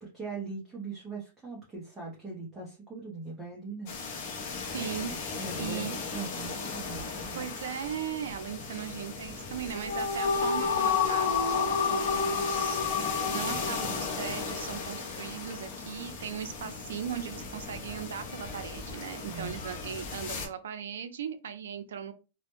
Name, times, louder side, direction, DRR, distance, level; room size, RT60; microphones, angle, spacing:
voice 1, 0.0-3.9 5.4-7.4 19.3-19.6, right 4 dB, 5° right, -5 dB, 0.5 m, -41 dB
sound 1, 3.9-20.5, left 4 dB, 35° left, 0.6 m, -38 dB
voice 2, 4.7-6.0 7.3-13.0 13.3-22.1, right 8 dB, 75° right, 10 dB, 0.4 m, -38 dB
sound 2, 9.5-15.0, left 5 dB, 75° left, 0.6 m, -29 dB
2.1 x 2.0 x 2.9 m, 0.31 s
supercardioid pair, 175°, 0 cm